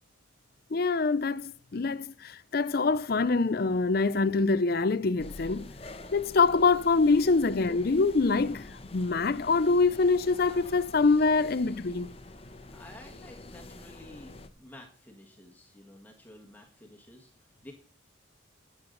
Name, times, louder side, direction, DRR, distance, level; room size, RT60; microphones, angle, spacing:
voice 1, 0.7-5.7 6.1-12.1, left 4 dB, 50° left, 0.5 m, -25 dB
sound 1, 5.2-14.5, left 2 dB, 30° left, 0.9 m, -47 dB
voice 2, 12.7-17.7, left 1 dB, 10° left, 1.5 m, -51 dB
9.8 x 9.4 x 3.9 m
head